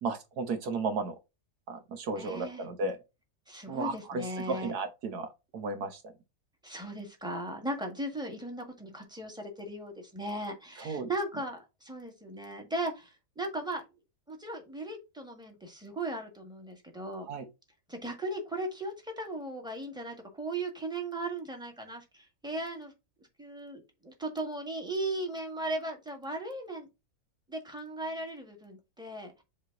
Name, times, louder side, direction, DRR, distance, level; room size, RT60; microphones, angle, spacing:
voice 1, 0.0-1.1 1.7-3.0 3.7-6.1 10.8-11.1 17.3-17.5, right 3 dB, 75° right, 1.5 m, -34 dB
voice 2, 2.2-2.6 3.5-4.7 6.6-13.8 14.3-17.3 17.9-22.9 23.4-26.9 27.5-29.3, right 1 dB, 5° right, 1.6 m, -37 dB
7.4 x 3.3 x 3.8 m
omnidirectional pair, 1.7 m